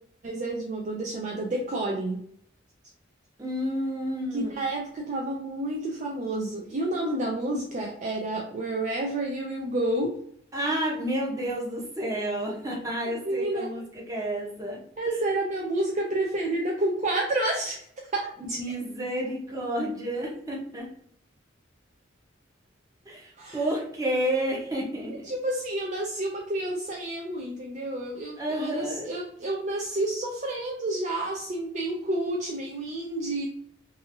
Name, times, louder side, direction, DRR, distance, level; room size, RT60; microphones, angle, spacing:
voice 1, 0.2-2.2 4.3-10.2 13.2-13.7 15.0-18.6 23.4-23.7 25.1-33.5, right 1 dB, 40° right, -1 dB, 0.4 m, -30 dB
voice 2, 3.4-4.5 10.5-14.8 15.1-15.2 18.5-20.9 23.1-25.1 28.4-29.1, right 1 dB, 20° right, -2 dB, 0.8 m, -30 dB
2.7 x 2.5 x 2.6 m, 0.67 s
head